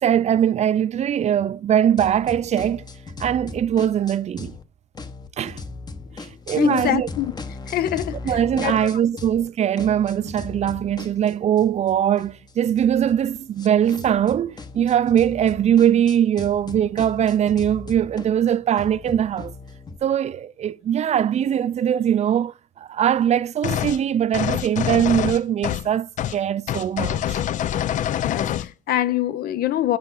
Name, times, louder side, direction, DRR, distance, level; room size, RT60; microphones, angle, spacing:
voice 1, 0.0-2.8 3.2-4.5 5.4-5.6 6.2-7.1 8.2-19.5 20.0-27.4, right 9 dB, 40° right, 0.4 m, -21 dB
sound 1, 2.0-4.6 4.9-9.5 9.8-20.0, left 4 dB, 25° left, 0.9 m, -38 dB
voice 2, 6.6-7.3 7.7-8.2 8.6-8.9 28.2-30.0, left 12 dB, 65° left, 0.8 m, -24 dB
sound 2, 23.6-24.0 24.3-25.9 26.2-26.4 26.7-28.7, left 11 dB, 50° left, 0.4 m, -25 dB
6.7 x 5.6 x 5.4 m
cardioid pair, 110°, 17 cm